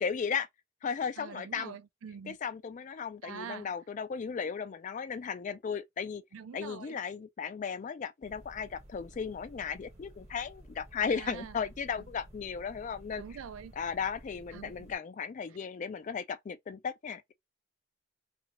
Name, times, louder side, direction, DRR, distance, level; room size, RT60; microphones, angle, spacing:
voice 1, 0.0-0.5 0.8-1.8 2.3-6.2 6.5-13.2 13.8-17.3, left 6 dB, 40° left, 0.3 m, -35 dB
voice 2, 1.2-2.4 3.2-3.7 6.3-7.0 11.1-11.6 13.2-13.7 14.5-14.9, right 7 dB, 80° right, 0.4 m, -45 dB
Car Ambience, 8.2-15.0, right 1 dB, 35° right, 1.1 m, -53 dB
2.7 x 2.5 x 2.8 m
head